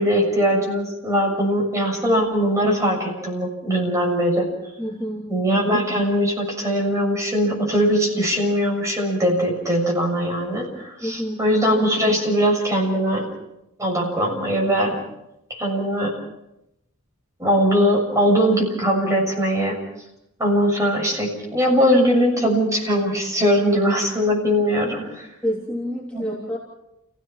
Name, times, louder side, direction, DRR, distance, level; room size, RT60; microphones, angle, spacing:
voice 1, 0.0-4.5 5.3-13.3 13.8-15.0 15.5-16.1 17.4-19.8 20.4-25.3 26.1-26.3, equal, 15° right, -1 dB, 6.8 m, -21 dB
voice 2, 4.8-5.3 11.0-11.4 25.4-26.6, equal, 5° left, -5 dB, 3.5 m, -28 dB
29.5 x 17.0 x 6.0 m, 0.85 s
head